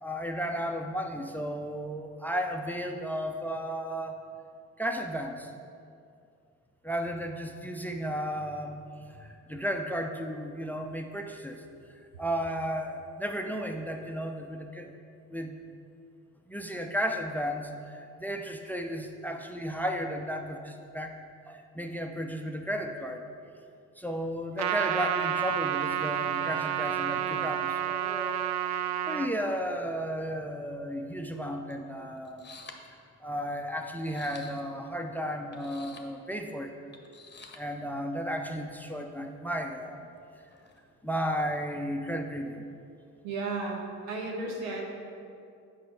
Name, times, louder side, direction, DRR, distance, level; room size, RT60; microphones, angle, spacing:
voice 1, 0.0-4.2 4.8-5.5 6.8-11.6 12.2-15.0 15.3-15.6 16.5-21.2 21.5-23.2 24.0-28.3 29.1-32.6 33.2-36.7 37.5-40.0 41.0-42.6, equal, 5° left, 4 dB, 0.6 m, -34 dB
Trumpet, 24.6-29.3, right 10 dB, 45° right, 0.4 m, -30 dB
sound 1, 31.7-31.8 32.2-32.9 33.9-34.9 35.5-36.1 36.9-37.6 38.4-38.6 40.5-41.0, left 4 dB, 25° left, 0.9 m, -49 dB
voice 2, 43.2-44.8, right 3 dB, 80° right, 1 dB, 1.0 m, -34 dB
8.4 x 5.1 x 3.8 m, 2.5 s
hypercardioid pair, 45°, 40 cm